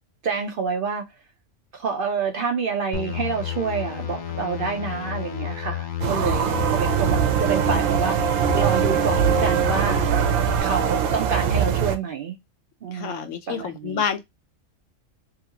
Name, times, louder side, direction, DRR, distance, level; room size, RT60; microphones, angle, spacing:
voice 1, 0.2-1.1 1.7-6.5 6.7-10.0 10.6-12.4 12.8-14.0, right 5 dB, 60° right, 0.6 m, -28 dB
sound 1, 2.9-10.6, left 10 dB, 60° left, 0.5 m, -31 dB
sound 2, 6.0-12.0, right 8 dB, 85° right, 1.0 m, -22 dB
voice 2, 12.9-14.2, left 7 dB, 75° left, 1.0 m, -28 dB
2.9 x 2.4 x 2.7 m
omnidirectional pair, 1.3 m